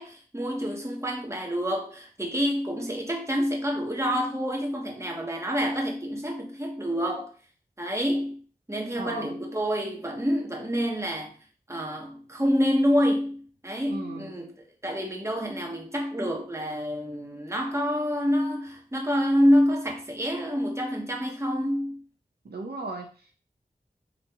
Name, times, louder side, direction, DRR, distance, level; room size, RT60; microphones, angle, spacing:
voice 1, 0.0-7.3 7.8-8.4 8.7-11.3 11.7-22.0, equal, 15° right, 1.3 m, -27 dB
voice 2, 8.9-9.3 13.9-14.3 22.4-23.3, right 3 dB, 80° right, 0.9 m, -36 dB
4.1 x 3.0 x 4.3 m
wide cardioid pair, 40°, 16 cm